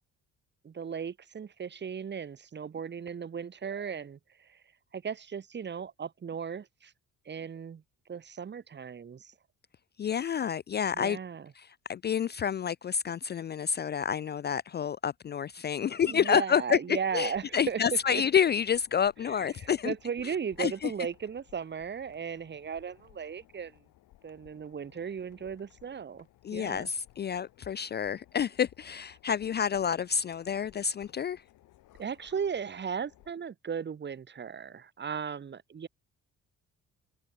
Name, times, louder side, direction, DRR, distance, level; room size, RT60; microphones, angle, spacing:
voice 1, 0.6-4.6 4.9-6.9 7.2-7.8 8.1-9.3 10.9-11.5 16.0-18.2 19.3-23.8 24.2-26.3 26.5-26.9 32.0-35.9, right 7 dB, 35° right, 1.1 m, -36 dB
voice 2, 10.0-11.2 11.6-16.8 17.1-19.9 20.6-20.9 26.4-31.4, left 8 dB, 35° left, 0.4 m, -29 dB
sound 1, 17.1-33.3, left 15 dB, 85° left, 5.0 m, -61 dB
cardioid pair, 90°, 30 cm